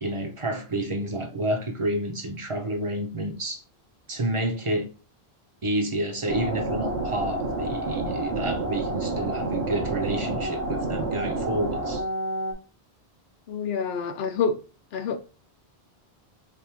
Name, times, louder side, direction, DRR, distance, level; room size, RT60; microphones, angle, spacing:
voice 1, 0.0-3.6 4.1-4.9 5.6-12.0, right 1 dB, 35° right, 0.7 m, -29 dB
sound 1, 6.3-12.5, right 2 dB, 85° right, 1.3 m, -29 dB
voice 2, 13.5-14.6 14.9-15.2, left 5 dB, 75° left, 0.9 m, -27 dB
3.4 x 2.4 x 4.5 m
omnidirectional pair, 1.1 m